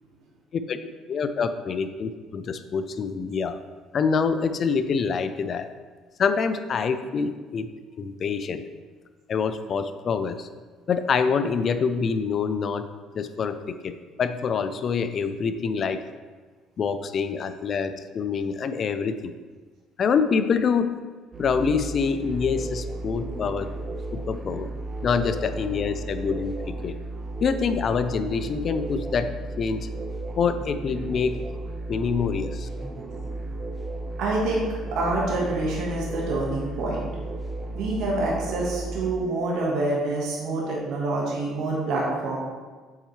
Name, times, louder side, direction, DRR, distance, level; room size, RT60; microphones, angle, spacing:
voice 1, 1.1-3.6 3.9-5.7 6.2-7.7 8.0-8.6 9.3-10.5 10.9-12.9 13.2-16.0 16.8-19.3 20.0-20.9 21.4-23.7 24.1-24.7 25.0-27.0 27.4-29.9 30.4-31.4 31.9-32.7, left 5 dB, 50° left, 10 dB, 0.4 m, -26 dB
sound 1, 21.3-39.1, right 2 dB, 30° right, 0.8 m, -34 dB
voice 2, 34.2-37.1 37.7-42.4, right 2 dB, 70° right, -4 dB, 1.4 m, -26 dB
7.3 x 4.1 x 3.2 m, 1.4 s
supercardioid pair, 85°, 0 cm